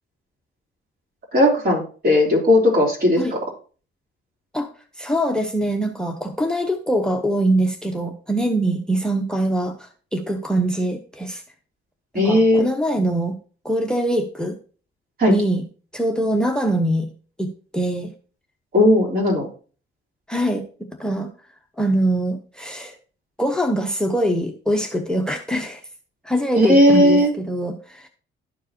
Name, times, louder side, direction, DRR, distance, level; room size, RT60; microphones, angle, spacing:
voice 1, 1.3-3.4 12.1-12.6 15.2-15.3 18.7-19.5 26.6-27.3, left 1 dB, 50° right, -1 dB, 3.5 m, -16 dB
voice 2, 5.0-11.4 12.2-13.4 13.6-14.5 15.3-15.6 15.9-17.1 17.4-18.1 20.3-20.6 21.0-21.3 21.8-22.9 23.4-25.8 26.2-28.1, right 1 dB, 5° left, 6 dB, 0.8 m, -23 dB
12.5 x 4.5 x 2.9 m, 0.39 s
cardioid pair, 90°, 20 cm